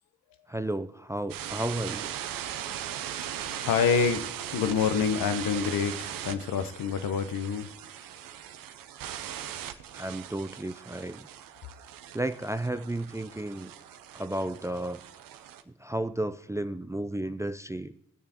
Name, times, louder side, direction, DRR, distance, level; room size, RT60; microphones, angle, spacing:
voice 1, 0.5-2.1 9.9-11.3 12.1-13.7 14.1-15.0 15.8-17.9, right 1 dB, 10° right, 12 dB, 0.5 m, -33 dB
sound 1, 1.3-15.6, right 10 dB, 65° right, 0.7 m, -39 dB
voice 2, 3.5-7.7, left 6 dB, 70° left, 10 dB, 0.9 m, -27 dB
19.5 x 6.9 x 2.9 m, 0.85 s
hypercardioid pair, 40°, 36 cm